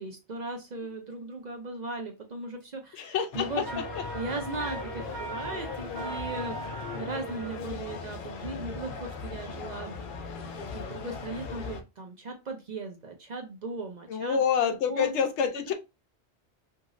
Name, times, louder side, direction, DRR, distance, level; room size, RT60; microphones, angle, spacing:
voice 1, 0.0-3.8 4.1-6.6 6.9-9.9 10.7-15.2, right 2 dB, 50° right, 0.6 m, -37 dB
voice 2, 2.9-3.7 4.0-4.1 14.1-15.7, left 7 dB, 85° left, 0.9 m, -27 dB
sound 1, 3.3-11.8, left 5 dB, 60° left, 0.6 m, -38 dB
Wind instrument woodwind instrument, 3.6-7.6, right 4 dB, 75° right, 0.9 m, -40 dB
2.9 x 2.7 x 2.5 m
omnidirectional pair, 1.2 m